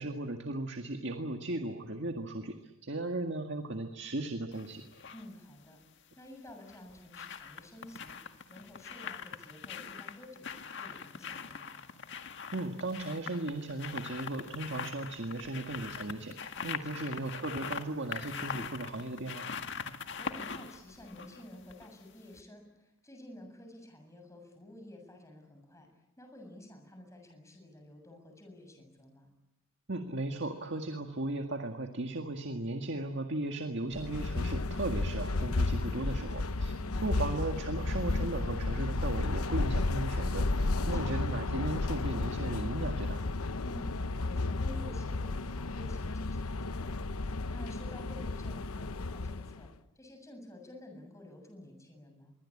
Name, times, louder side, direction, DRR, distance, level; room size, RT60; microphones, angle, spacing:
voice 1, 0.0-4.8 12.5-19.5 29.9-43.2, right 2 dB, 55° right, 5 dB, 1.9 m, -36 dB
sound 1, 4.5-5.3 6.5-22.0 22.3-22.4, left 6 dB, 55° left, 1.8 m, -42 dB
voice 2, 5.1-5.8 6.2-11.9 16.5-17.1 20.2-25.9 26.2-29.3 36.8-37.4 40.7-41.2 43.6-49.7 50.0-52.3, left 1 dB, 15° left, 4 dB, 7.3 m, -51 dB
sound 2, 33.9-49.7, left 2 dB, 90° left, 0.9 m, -33 dB
26.0 x 23.5 x 8.7 m, 0.91 s
head